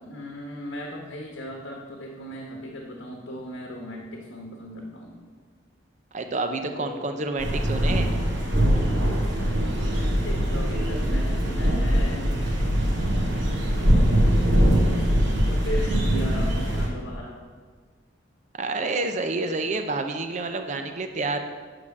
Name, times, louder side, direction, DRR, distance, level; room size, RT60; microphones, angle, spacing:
voice 1, 0.0-5.2 6.7-7.1 9.8-12.3 15.4-17.4 20.7-20.8, equal, 80° left, 0 dB, 1.2 m, -37 dB
voice 2, 6.1-8.1 18.6-21.4, right 3 dB, 40° right, 6 dB, 0.5 m, -28 dB
sound 1, 7.4-16.9, equal, 75° right, 2.2 m, -22 dB
8.5 x 4.9 x 7.2 m, 1.5 s
head